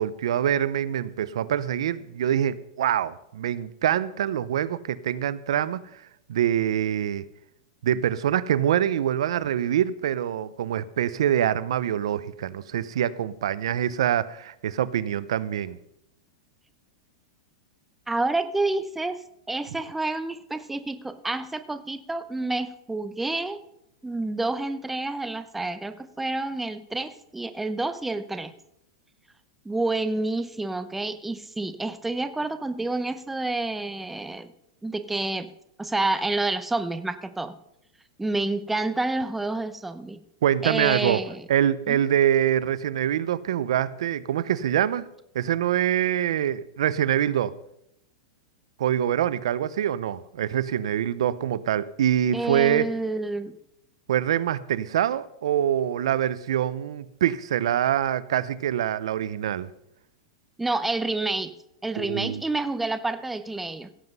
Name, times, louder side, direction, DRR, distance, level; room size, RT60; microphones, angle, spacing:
voice 1, 0.0-6.0 6.3-7.2 7.8-15.8 40.4-41.2 41.5-45.1 45.3-47.5 48.8-52.9 54.1-59.7 62.0-62.4, right 10 dB, 80° right, 0.7 m, -25 dB
voice 2, 18.1-19.2 19.5-23.6 24.0-28.5 29.6-34.5 34.8-35.5 35.8-37.6 38.2-40.2 40.6-41.4 41.9-42.0 52.3-53.5 60.6-61.5 61.8-63.9, right 2 dB, 5° right, 0.7 m, -29 dB
16.0 x 7.9 x 5.4 m
supercardioid pair, 140°, 3 cm